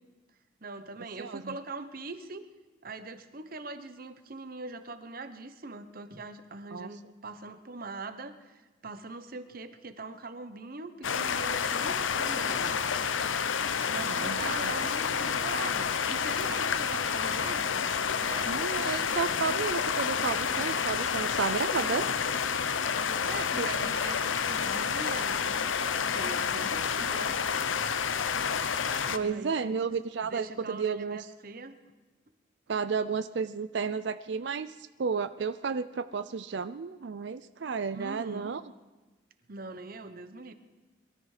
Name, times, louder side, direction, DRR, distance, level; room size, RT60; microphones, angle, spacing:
voice 1, 0.6-2.4 2.8-12.8 13.9-17.9 18.2-18.5 23.0-27.4 29.2-29.8 30.2-31.7 37.9-38.5 39.5-40.5, right 3 dB, 50° right, 10 dB, 1.0 m, -42 dB
voice 2, 1.2-1.5 6.7-6.9 14.1-14.7 18.5-22.1 23.6-23.9 29.1-31.2 32.7-34.7 35.0-38.6, right 5 dB, 65° right, 12 dB, 0.4 m, -32 dB
sound 1, 11.0-29.2, left 6 dB, 90° left, 0.8 m, -29 dB
22.5 x 13.5 x 4.9 m, 1.2 s
head